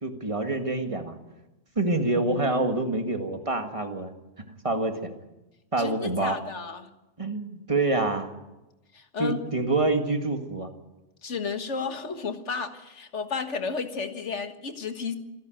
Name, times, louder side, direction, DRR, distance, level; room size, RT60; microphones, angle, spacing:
voice 1, 0.0-1.2 1.8-4.1 4.6-5.1 5.7-6.4 7.2-8.3 9.2-10.7, right 2 dB, 25° right, 5 dB, 1.9 m, -26 dB
voice 2, 5.8-6.9 8.9-9.4 11.2-15.2, left 5 dB, 75° left, 8 dB, 1.9 m, -32 dB
26.5 x 11.5 x 9.3 m, 1.0 s
omnidirectional pair, 1.2 m